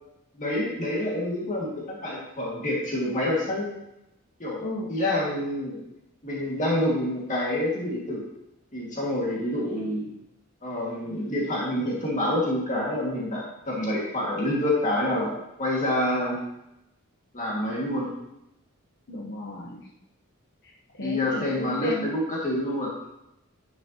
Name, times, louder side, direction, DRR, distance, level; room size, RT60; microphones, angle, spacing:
voice 1, 0.4-3.7 4.4-4.6 4.9-5.8 6.2-8.2 8.7-10.1 10.6-15.3 15.6-16.4 17.3-18.1 21.0-22.9, left 1 dB, 40° left, -5 dB, 2.1 m, -27 dB
voice 2, 19.1-19.9 20.6-22.1, left 1 dB, 55° left, -3 dB, 1.0 m, -35 dB
10.5 x 7.1 x 2.9 m, 0.86 s
head